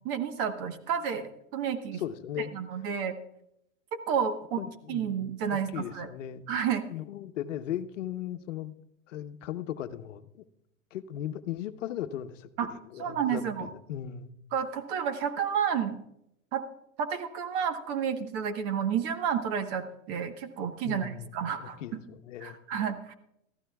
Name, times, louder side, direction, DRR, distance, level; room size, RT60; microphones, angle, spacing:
voice 1, 0.0-2.0 2.5-3.1 3.9-4.6 4.9-6.1 6.5-6.8 12.6-12.7 13.0-13.7 14.5-15.9 16.5-16.6 17.0-22.0 22.4-23.1, right 8 dB, 35° right, 9 dB, 1.2 m, -31 dB
voice 2, 1.9-2.5 4.6-6.4 6.9-8.7 9.1-10.4 10.9-14.3 20.8-22.6, left 11 dB, 70° left, 10 dB, 1.0 m, -38 dB
20.5 x 14.0 x 2.3 m, 0.80 s
hypercardioid pair, 135°, 39 cm